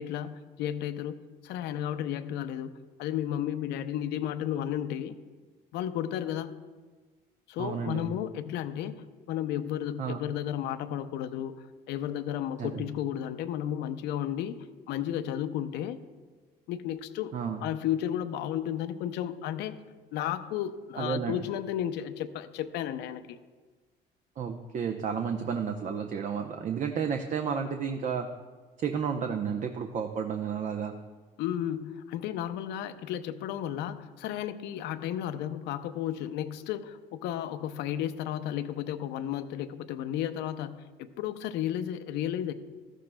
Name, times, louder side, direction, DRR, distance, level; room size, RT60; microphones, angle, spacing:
voice 1, 0.0-2.7 3.0-5.1 5.7-6.5 7.5-11.5 11.9-14.6 14.9-16.0 16.7-19.8 20.1-23.4 31.4-42.5, left 10 dB, 85° left, 10 dB, 0.6 m, -33 dB
voice 2, 7.6-8.1 10.0-10.2 12.6-12.9 17.3-17.6 21.0-21.4 24.4-28.3 28.8-30.9, right 7 dB, 45° right, 5 dB, 0.6 m, -32 dB
14.0 x 11.5 x 2.2 m, 1.4 s
cardioid pair, 110°, 17 cm